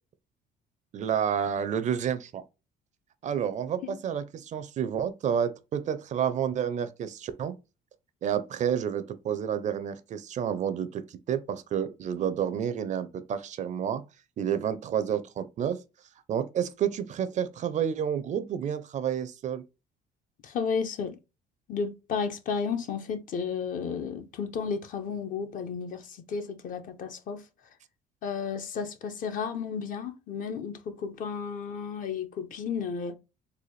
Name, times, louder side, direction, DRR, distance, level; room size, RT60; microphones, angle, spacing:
voice 1, 0.9-2.4 3.2-7.6 8.2-14.0 14.4-15.8 16.3-19.6, right 8 dB, 45° right, 0.4 m, -30 dB
voice 2, 20.4-21.2 21.7-27.5 28.2-33.2, left 6 dB, 50° left, 0.6 m, -33 dB
4.1 x 2.2 x 3.1 m
cardioid pair, 110°, 17 cm